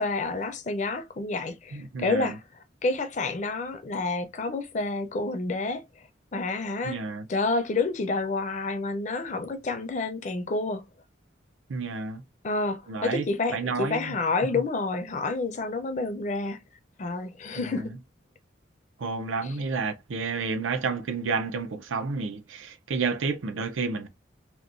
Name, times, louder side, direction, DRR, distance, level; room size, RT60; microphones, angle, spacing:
voice 1, 0.0-2.4 2.8-5.8 6.3-7.0 7.3-10.8 12.4-16.6 17.0-17.9 19.4-19.5, left 3 dB, 40° left, 0.4 m, -29 dB
voice 2, 1.7-2.4 6.8-7.3 11.7-12.2 12.9-13.3 13.5-14.2 14.5-14.6 17.6-18.0 19.0-24.1, right 4 dB, 90° right, 0.5 m, -30 dB
2.8 x 2.1 x 2.5 m
head